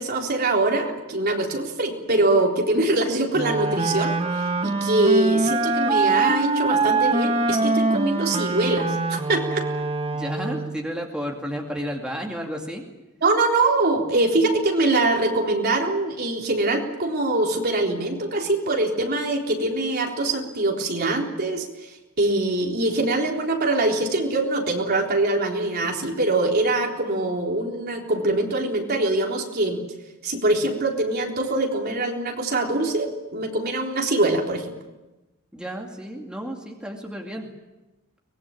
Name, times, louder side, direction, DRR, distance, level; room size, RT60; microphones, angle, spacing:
voice 1, 0.0-4.2 4.6-9.6 13.2-21.7 22.2-29.8 30.2-34.8, right 2 dB, 45° right, 0 dB, 3.8 m, -23 dB
Wind instrument woodwind instrument, 3.3-10.8, right 3 dB, 25° right, 1.1 m, -24 dB
voice 2, 10.1-12.8 35.5-37.5, equal, 5° right, 0 dB, 2.5 m, -32 dB
24.0 x 20.5 x 8.9 m, 1.1 s
head